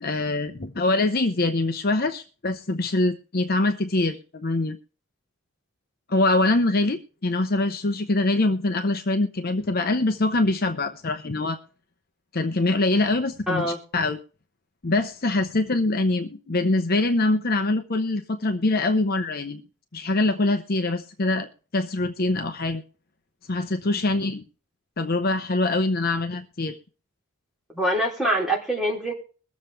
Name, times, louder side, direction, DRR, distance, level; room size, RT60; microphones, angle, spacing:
voice 1, 0.0-4.8 6.1-11.6 12.3-14.2 14.8-19.6 19.9-22.8 23.5-24.4 25.0-26.8, left 2 dB, 45° left, 7 dB, 0.8 m, -24 dB
voice 2, 13.5-13.8 27.7-29.1, right 1 dB, ahead, -2 dB, 3.2 m, -24 dB
22.0 x 7.4 x 3.3 m, 0.38 s
head